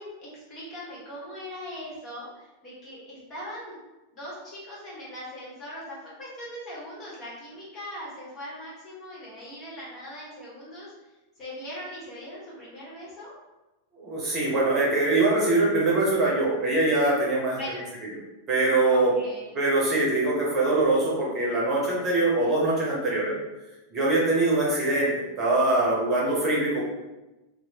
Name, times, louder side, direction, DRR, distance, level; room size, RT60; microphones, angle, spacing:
voice 1, 0.0-3.8 4.1-10.9 11.4-13.3 17.5-17.8 18.9-19.5, equal, 35° left, -7 dB, 1.4 m, -40 dB
voice 2, 14.0-17.6 18.5-19.1 19.5-23.3 23.9-25.1 25.4-26.8, right 2 dB, 25° right, -5 dB, 1.0 m, -23 dB
3.0 x 2.2 x 2.9 m, 1.1 s
figure-of-eight pair, 90°, 0 cm